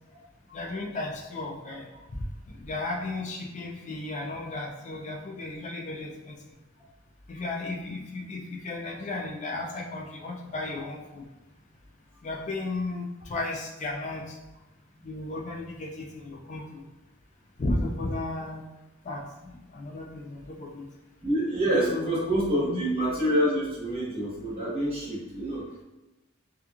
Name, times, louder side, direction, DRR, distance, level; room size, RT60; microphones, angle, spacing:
voice 1, 0.5-1.9 2.5-6.4 7.3-11.2 12.2-14.4 15.0-16.8 17.6-18.6 19.0-20.9 21.9-22.2 22.5-22.8, left 2 dB, 35° left, 0 dB, 0.3 m, -34 dB
voice 2, 21.2-25.8, right 1 dB, 30° right, -7 dB, 1.1 m, -27 dB
2.8 x 2.3 x 2.3 m, 1.0 s
head